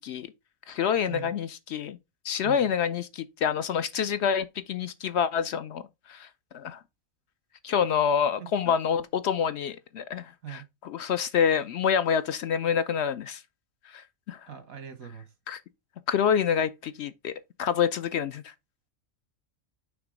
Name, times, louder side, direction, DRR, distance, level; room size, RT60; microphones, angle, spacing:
voice 1, 0.7-2.0 2.2-5.8 6.1-6.3 6.5-6.8 7.6-13.4 13.9-14.4 15.5-15.6 16.1-18.5, left 7 dB, 65° left, 0.7 m, -27 dB
voice 2, 8.4-8.7 10.4-10.7 14.5-15.3, right 9 dB, 85° right, 1.8 m, -42 dB
5.9 x 3.4 x 4.9 m
omnidirectional pair, 1.4 m